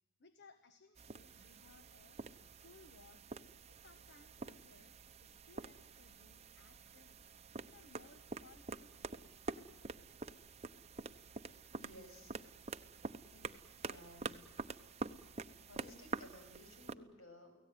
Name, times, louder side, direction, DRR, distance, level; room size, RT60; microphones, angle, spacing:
voice 1, 0.2-2.2 2.6-3.2 3.6-7.2 7.6-9.3, left 3 dB, 55° left, 9 dB, 1.5 m, -64 dB
sound 1, 0.9-16.9, right 3 dB, 30° right, 0.9 m, -48 dB
voice 2, 11.8-12.4 13.3-13.5 13.8-14.4 15.6-17.6, left 1 dB, 85° left, 5 dB, 7.2 m, -57 dB
30.0 x 18.0 x 9.5 m, 0.95 s
head